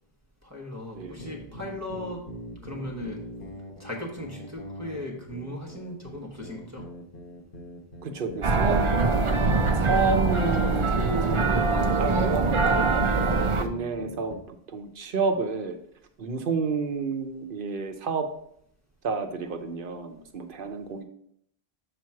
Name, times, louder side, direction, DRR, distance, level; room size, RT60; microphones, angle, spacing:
voice 1, 0.4-2.2 2.6-3.3 3.8-6.8 12.7-12.9, left 1 dB, 15° right, -2 dB, 1.1 m, -37 dB
sound 1, 0.9-14.5, left 1 dB, 55° left, 1.2 m, -42 dB
voice 2, 1.0-1.3 8.0-13.1 13.6-15.8 16.2-18.3 19.0-21.0, right 4 dB, 60° right, 6 dB, 0.9 m, -30 dB
sound 2, 8.4-13.7, right 3 dB, 40° right, 0.5 m, -23 dB
6.8 x 3.1 x 5.8 m, 0.69 s
omnidirectional pair, 1.1 m